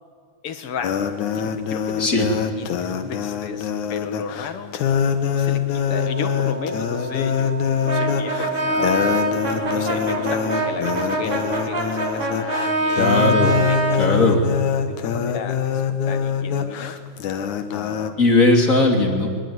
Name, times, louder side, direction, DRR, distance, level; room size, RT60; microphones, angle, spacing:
voice 1, 0.4-1.1 1.3-4.8 5.3-7.6 7.8-9.2 9.7-13.2 13.7-14.4 14.9-17.0 17.7-18.2, left 6 dB, 55° left, 10 dB, 2.1 m, -34 dB
sound 1, 0.8-18.1, left 7 dB, 70° left, 2.8 m, -24 dB
Wind instrument woodwind instrument, 5.9-11.6, equal, 5° left, 3.0 m, -33 dB
Brass instrument, 7.9-14.0, right 2 dB, 45° right, 5.7 m, -24 dB
voice 2, 13.0-13.6 14.0-14.4 18.2-19.3, left 2 dB, 25° left, 3 dB, 3.2 m, -17 dB
23.5 x 21.5 x 9.7 m, 2.1 s
omnidirectional pair, 3.7 m